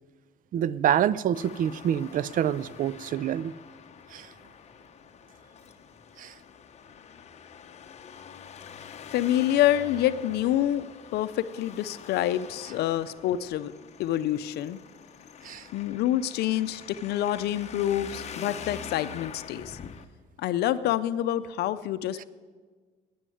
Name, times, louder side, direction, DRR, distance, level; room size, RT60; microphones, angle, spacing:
voice 1, 0.5-3.5 4.1-4.3 6.2-6.3 15.4-15.7 22.2-22.3, right 10 dB, 55° right, 20 dB, 0.5 m, -27 dB
Traffic noise roadway noise, 1.3-20.0, left 7 dB, 40° left, 0.9 m, -45 dB
voice 2, 9.1-10.9 11.1-13.7 14.0-14.8 15.7-19.8 20.4-22.2, left 12 dB, 75° left, 13 dB, 0.6 m, -27 dB
12.5 x 9.4 x 9.2 m, 1.5 s
cardioid pair, 110°, 17 cm